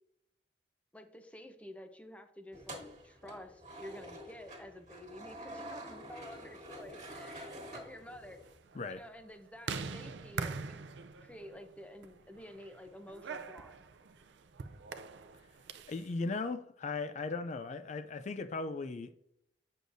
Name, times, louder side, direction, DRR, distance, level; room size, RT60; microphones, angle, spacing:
voice 1, 0.9-8.4 8.9-10.8 11.2-13.8, left 1 dB, 10° left, 0.7 m, -50 dB
sound 1, 2.5-8.5, right 1 dB, 40° right, 1.7 m, -48 dB
sound 2, 7.0-16.1, right 4 dB, 80° right, 0.5 m, -44 dB
voice 2, 15.9-19.1, left 3 dB, 40° left, 0.4 m, -37 dB
8.3 x 6.3 x 2.6 m
head